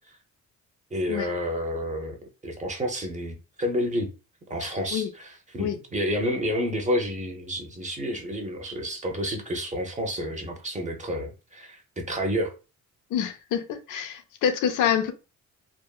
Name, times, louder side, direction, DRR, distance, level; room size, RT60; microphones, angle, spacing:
voice 1, 0.9-2.2 2.4-4.1 4.5-12.5, equal, 25° right, 0.8 m, -30 dB
voice 2, 4.6-5.1 5.6-5.8 13.1-15.1, left 8 dB, 80° left, 0.5 m, -27 dB
3.5 x 2.1 x 2.3 m
cardioid pair, 90°, 30 cm